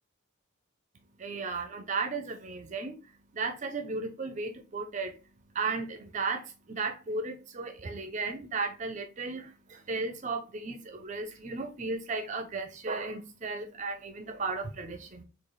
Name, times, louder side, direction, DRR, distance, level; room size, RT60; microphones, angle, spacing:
voice 1, 1.2-5.2 5.5-15.2, right 4 dB, 35° right, 0.4 m, -35 dB
3.8 x 2.4 x 3.1 m
head